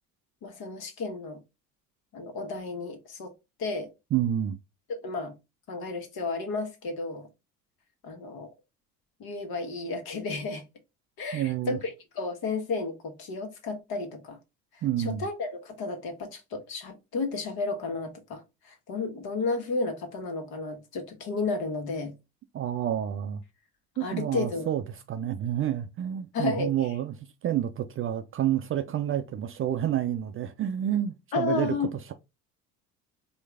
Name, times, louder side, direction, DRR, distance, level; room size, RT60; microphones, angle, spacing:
voice 1, 0.4-1.4 2.1-3.3 3.6-3.9 4.9-5.3 5.7-7.3 8.0-8.5 9.2-10.6 11.2-14.4 15.0-22.1 24.0-24.7 26.3-26.7 31.3-31.9, left 3 dB, 55° left, 1.5 m, -32 dB
voice 2, 4.1-4.6 11.3-11.8 14.8-15.2 22.5-23.4 24.0-24.8 25.1-27.1 27.4-31.7, right 11 dB, 30° right, 0.4 m, -29 dB
4.5 x 2.5 x 3.4 m
figure-of-eight pair, 60°, 45 cm